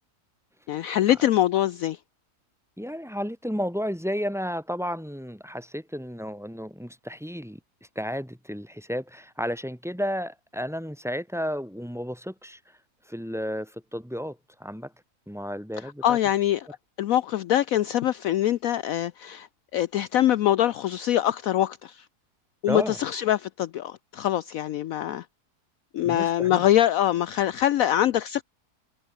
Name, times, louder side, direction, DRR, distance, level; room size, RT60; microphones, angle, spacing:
voice 1, 0.7-2.0 16.0-16.7 17.0-19.5 19.7-22.0 22.6-25.3 25.9-28.4, left 12 dB, 70° left, 1.0 m, -24 dB
voice 2, 2.8-7.6 8.0-12.7 13.1-14.9 15.3-16.2 22.7-23.0 26.0-26.6, equal, ahead, 4.2 m, -32 dB
omnidirectional pair, 1.6 m